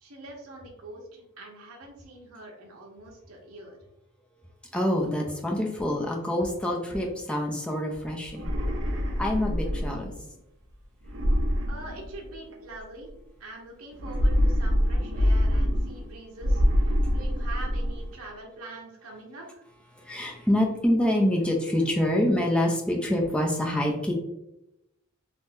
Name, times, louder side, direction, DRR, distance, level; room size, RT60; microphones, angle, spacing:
voice 1, 0.0-3.8 11.7-13.1 13.4-16.6 17.1-19.6, right 2 dB, 80° right, -1 dB, 1.0 m, -44 dB
voice 2, 4.7-8.5 9.2-10.1 19.9-24.1, left 1 dB, 5° left, 0 dB, 0.5 m, -26 dB
sound 1, 8.3-10.2 11.0-12.5 13.9-16.1 16.4-18.1, equal, 60° right, 0.7 m, -25 dB
3.6 x 2.9 x 2.6 m, 0.88 s
head